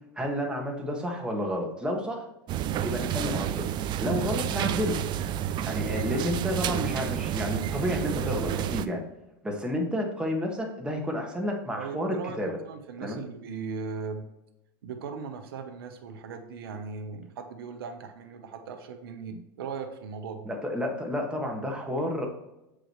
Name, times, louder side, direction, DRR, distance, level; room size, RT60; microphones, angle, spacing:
voice 1, 0.1-2.2 2.8-3.6 4.0-5.0 5.6-9.0 9.4-12.5 13.0-13.2 20.4-22.3, left 1 dB, 10° right, 1 dB, 1.6 m, -30 dB
sound 1, 2.5-8.9, right 10 dB, 40° right, 0.4 m, -30 dB
voice 2, 11.8-12.4 12.6-14.2 14.8-20.5, right 5 dB, 85° right, 6 dB, 0.9 m, -38 dB
7.6 x 4.9 x 3.1 m, 0.93 s
supercardioid pair, 110°, 12 cm